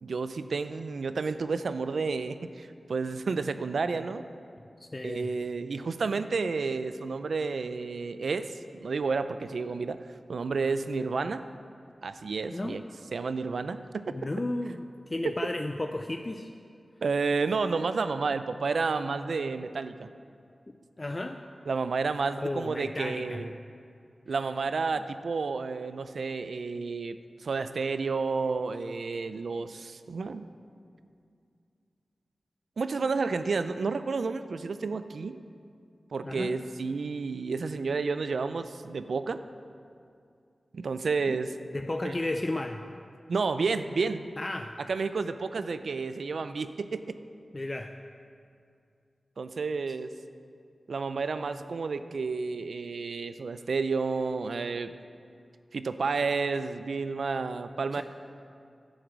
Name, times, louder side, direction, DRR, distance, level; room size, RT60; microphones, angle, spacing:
voice 1, 0.0-4.2 5.0-10.0 10.3-11.4 12.0-12.8 13.1-14.2 17.0-20.1 21.7-23.5 24.3-30.5 32.8-35.4 36.1-39.4 40.7-41.5 42.0-42.1 43.3-44.3 44.9-47.2 49.4-50.1 50.9-54.9 55.7-58.0, right 4 dB, 85° right, 11 dB, 0.4 m, -31 dB
voice 2, 4.8-5.3 12.5-12.8 14.1-14.8 15.1-16.5 21.0-21.4 22.4-23.4 36.2-36.6 41.3-41.4 41.7-42.8 44.4-44.7 47.5-47.9 57.9-58.0, left 2 dB, 35° left, 5 dB, 0.5 m, -33 dB
11.5 x 7.9 x 6.1 m, 2.4 s
cardioid pair, 55°, 0 cm